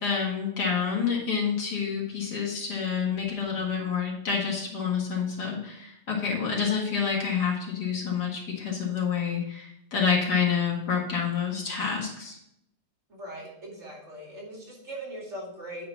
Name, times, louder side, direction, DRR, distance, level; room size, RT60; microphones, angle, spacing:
voice 1, 0.0-12.4, left 6 dB, 75° left, -2 dB, 2.4 m, -28 dB
voice 2, 13.1-15.9, right 1 dB, 45° right, -3 dB, 2.8 m, -40 dB
8.6 x 3.9 x 5.6 m, 0.78 s
omnidirectional pair, 1.7 m